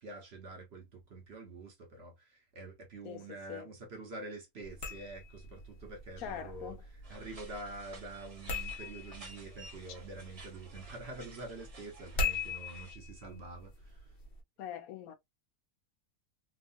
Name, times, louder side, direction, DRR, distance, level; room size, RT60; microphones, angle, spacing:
voice 1, 0.0-6.8 7.1-14.0, right 2 dB, 50° right, 1.0 m, -46 dB
voice 2, 3.0-3.8 6.2-6.8 9.9-10.0 14.6-15.1, left 9 dB, 75° left, 1.0 m, -43 dB
sound 1, 4.6-14.4, left 3 dB, 50° left, 0.8 m, -42 dB
sound 2, 7.0-12.9, right 2 dB, 25° right, 1.0 m, -54 dB
3.0 x 2.4 x 2.4 m
omnidirectional pair, 1.6 m